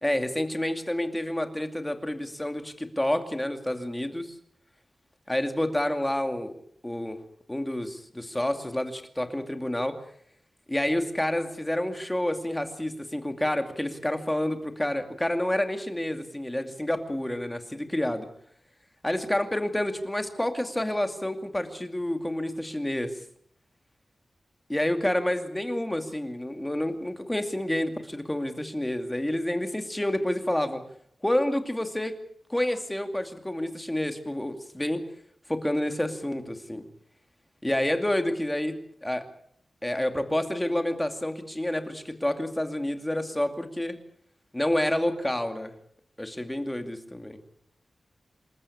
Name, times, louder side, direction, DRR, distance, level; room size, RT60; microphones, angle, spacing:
voice 1, 0.0-4.3 5.3-6.5 6.8-7.2 7.5-10.0 10.7-18.3 19.0-23.1 24.7-30.8 31.2-32.2 32.5-35.0 35.5-36.8 37.6-39.3 39.8-44.0 44.5-45.7 46.2-47.4, left 1 dB, 10° left, 6 dB, 2.4 m, -29 dB
27.5 x 14.0 x 8.6 m, 0.67 s
wide cardioid pair, 135°, 0 cm